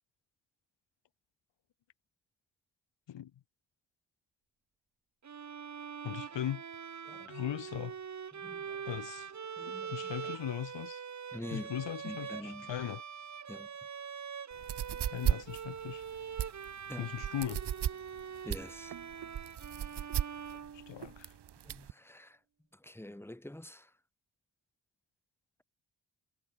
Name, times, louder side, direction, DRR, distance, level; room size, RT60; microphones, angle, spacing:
Bowed string instrument, 5.2-21.3, right 7 dB, 40° right, 3.1 m, -44 dB
voice 1, 6.0-6.7 7.3-8.0 8.9-9.3 9.7-11.0 11.5-13.0 15.1-16.0 17.0-17.7 20.7-21.3, left 11 dB, 80° left, 5.6 m, -39 dB
voice 2, 8.4-8.8 9.6-9.9 11.3-11.7 12.0-12.7 13.5-13.7 16.9-17.1 18.4-18.9 21.6-22.4 22.8-23.9, left 1 dB, 5° left, 7.4 m, -45 dB
sound 1, 14.5-21.9, right 10 dB, 65° right, 3.9 m, -35 dB
wide cardioid pair, 175°, 43 cm